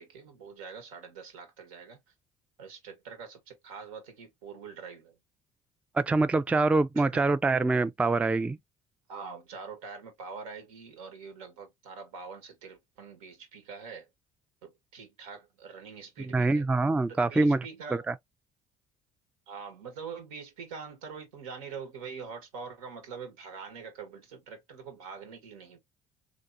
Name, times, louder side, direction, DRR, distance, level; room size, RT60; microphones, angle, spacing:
voice 1, 0.0-2.0 2.6-5.2 6.9-7.2 9.1-14.1 14.6-16.7 17.0-18.1 19.5-25.8, right 5 dB, 85° right, 1.4 m, -44 dB
voice 2, 6.0-8.6 16.3-17.6 17.9-18.1, right 3 dB, 10° right, 0.3 m, -25 dB
3.4 x 2.9 x 2.6 m
hypercardioid pair, 65°, 17 cm